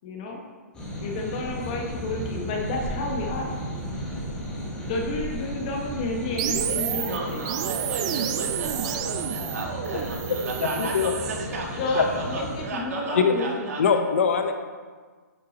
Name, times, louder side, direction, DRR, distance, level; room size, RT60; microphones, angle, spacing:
voice 1, 0.0-0.4 1.0-3.6 4.9-7.4 11.8-13.7, left 2 dB, 25° left, 1 dB, 1.1 m, -31 dB
sound 1, 0.7-12.6, equal, 10° left, 1.4 m, -34 dB
sound 2, 6.4-11.5, right 9 dB, 20° right, 0.3 m, -30 dB
voice 2, 7.0-14.0, right 3 dB, 55° right, -2 dB, 2.2 m, -34 dB
voice 3, 10.8-11.1 12.0-12.1 13.2-13.3 13.8-14.5, left 6 dB, 50° left, 6 dB, 0.8 m, -21 dB
9.9 x 6.5 x 4.0 m, 1.5 s
hypercardioid pair, 175°, 10 cm